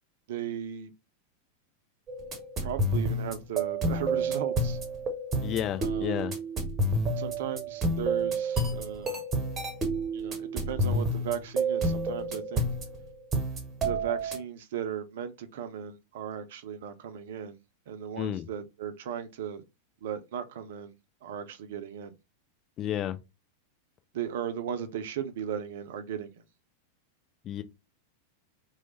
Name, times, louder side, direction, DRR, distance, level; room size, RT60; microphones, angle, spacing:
voice 1, 0.3-0.9 2.6-4.8 5.8-6.3 7.2-9.2 10.1-12.7 13.8-17.6 17.9-19.6 20.0-20.9 21.2-22.1 24.1-26.3, right 8 dB, 55° right, 0.5 m, -36 dB
sound 1, 2.1-14.4, right 2 dB, 25° right, 0.9 m, -30 dB
voice 2, 5.4-6.4 18.2-18.5 22.8-23.2 27.4-27.6, left 11 dB, 30° left, 0.4 m, -31 dB
3.1 x 2.1 x 4.0 m
figure-of-eight pair, 90°, 0 cm